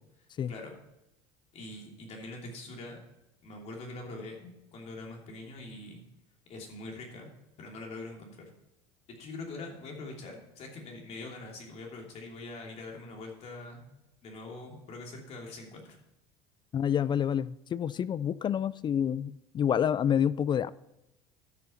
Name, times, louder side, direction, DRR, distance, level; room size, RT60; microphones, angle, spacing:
voice 1, 1.5-3.0 3.4-6.0 6.5-7.3 7.6-8.5 9.1-13.9 14.2-16.0, left 2 dB, 50° left, 3.1 m, -43 dB
voice 2, 16.7-20.7, left 9 dB, 35° left, 0.4 m, -28 dB
12.5 x 6.9 x 4.4 m
hypercardioid pair, 75°, 14 cm